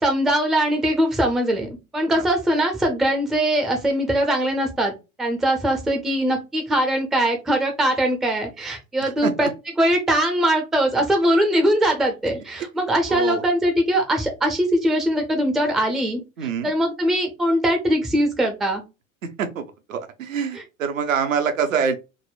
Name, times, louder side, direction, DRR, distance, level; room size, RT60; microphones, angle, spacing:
voice 1, 0.0-4.9 5.2-9.5 9.8-16.2 16.6-18.8 20.5-20.6, right 1 dB, ahead, 0.4 m, -21 dB
voice 2, 13.1-13.4 16.4-16.7 19.2-22.0, right 6 dB, 70° right, 0.7 m, -25 dB
3.6 x 2.0 x 2.3 m
figure-of-eight pair, 80°, 41 cm